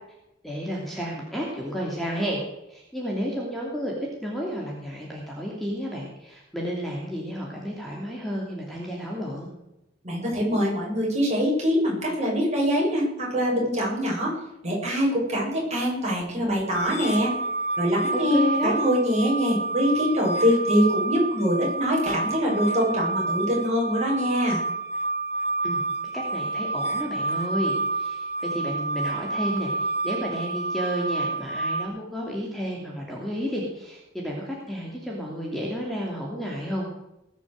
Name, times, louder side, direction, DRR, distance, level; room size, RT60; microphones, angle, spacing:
voice 1, 0.4-2.4 2.7-3.9 4.2-9.5 18.1-18.8 25.6-25.8 26.1-36.9, equal, ahead, -3 dB, 2.9 m, -31 dB
voice 2, 10.0-14.3 14.6-17.3 17.8-24.6, equal, 35° right, -3 dB, 7.1 m, -24 dB
sound 1, 16.7-31.8, right 3 dB, 35° left, 1.8 m, -29 dB
20.0 x 7.3 x 7.9 m, 0.88 s
head